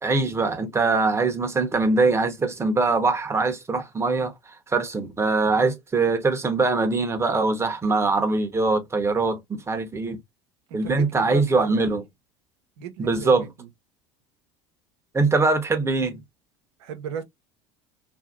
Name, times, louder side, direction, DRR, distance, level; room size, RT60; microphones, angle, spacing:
voice 1, 0.0-4.3 4.7-10.2 10.7-12.0 13.0-13.5 15.1-16.2, right 3 dB, 20° right, 0.9 m, -22 dB
voice 2, 10.7-11.8 12.8-13.7 16.8-17.2, right 7 dB, 70° right, 0.9 m, -36 dB
2.8 x 2.7 x 2.4 m
hypercardioid pair, 80°, 14 cm